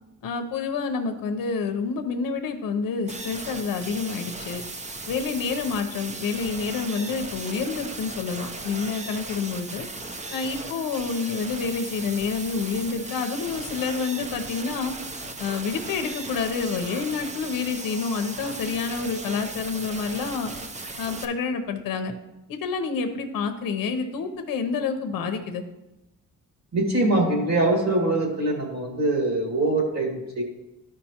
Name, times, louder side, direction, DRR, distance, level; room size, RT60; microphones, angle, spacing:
voice 1, 0.2-4.6 5.1-9.9 10.3-14.9 15.4-20.5 21.0-22.1 22.5-25.6, left 5 dB, 80° left, 6 dB, 0.8 m, -28 dB
sound 1, 3.1-21.2, right 2 dB, 20° right, 0.7 m, -37 dB
voice 2, 26.7-30.4, right 2 dB, 50° right, 1 dB, 2.2 m, -23 dB
13.0 x 5.1 x 2.9 m, 0.97 s
cardioid pair, 95°, 33 cm